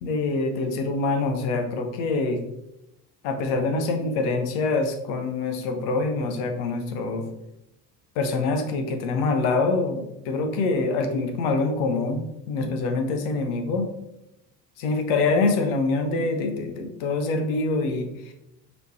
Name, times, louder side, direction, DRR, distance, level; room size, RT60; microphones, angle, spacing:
voice 1, 0.0-2.4 3.2-7.2 8.2-13.9 14.8-18.3, left 3 dB, 60° left, 5 dB, 0.8 m, -25 dB
5.1 x 3.0 x 3.1 m, 0.88 s
figure-of-eight pair, 55°, 48 cm